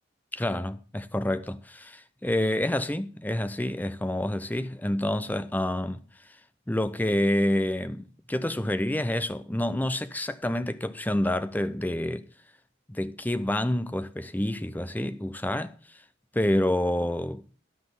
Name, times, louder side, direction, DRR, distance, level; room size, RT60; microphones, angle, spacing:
voice 1, 0.3-6.0 6.7-12.3 12.9-15.7 16.3-17.4, left 1 dB, 10° left, 0.6 m, -28 dB
12.0 x 6.1 x 6.9 m
head